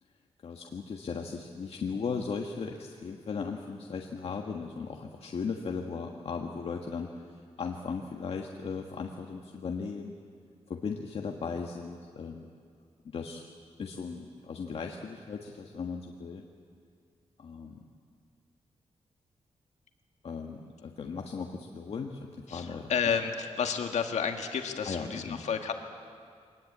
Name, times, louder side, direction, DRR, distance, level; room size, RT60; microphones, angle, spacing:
voice 1, 0.4-10.2 10.7-12.5 13.0-13.5 13.8-16.4 17.4-17.8 20.2-22.9 24.8-25.4, left 5 dB, 60° left, 2 dB, 1.5 m, -37 dB
voice 2, 22.5-25.7, left 6 dB, 80° left, 5 dB, 1.8 m, -31 dB
23.5 x 19.5 x 8.7 m, 2.2 s
wide cardioid pair, 115°, 12 cm